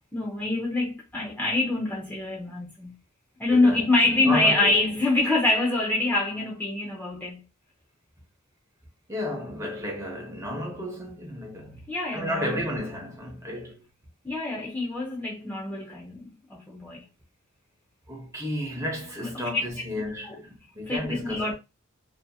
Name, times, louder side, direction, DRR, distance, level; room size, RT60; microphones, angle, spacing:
voice 1, 0.1-3.0 3.4-7.4 11.9-12.6 14.2-16.2 16.5-17.1 19.2-19.5 20.2-20.4 20.9-21.6, left 2 dB, 10° left, 0.5 m, -25 dB
voice 2, 3.5-4.9 9.1-13.8 18.1-21.6, left 1 dB, 15° right, 0.8 m, -33 dB
2.7 x 2.7 x 2.3 m
head